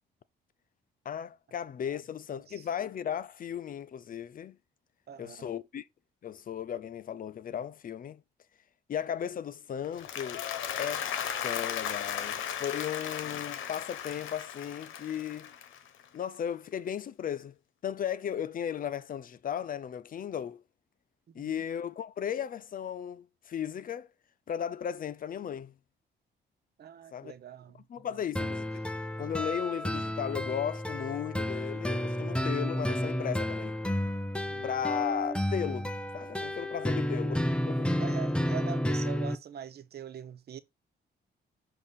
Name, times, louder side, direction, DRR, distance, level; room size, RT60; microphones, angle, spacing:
voice 1, 1.0-4.6 5.2-5.9 6.2-8.2 8.9-10.5 10.8-11.1 11.4-15.5 16.1-17.5 17.8-20.6 21.3-24.1 24.5-25.7 27.1-27.3 27.9-28.8 29.2-33.8 34.6-37.9, left 9 dB, 45° left, 0.5 m, -36 dB
voice 2, 2.3-2.7 5.1-5.5 21.4-21.5 26.8-28.1 34.4-34.7 37.8-40.6, right 9 dB, 55° right, 0.8 m, -44 dB
Applause, 9.8-16.2, left 9 dB, 80° left, 1.0 m, -36 dB
sound 1, 28.4-39.4, left 1 dB, 5° left, 0.7 m, -31 dB
6.7 x 2.7 x 5.5 m
cardioid pair, 90°, 20 cm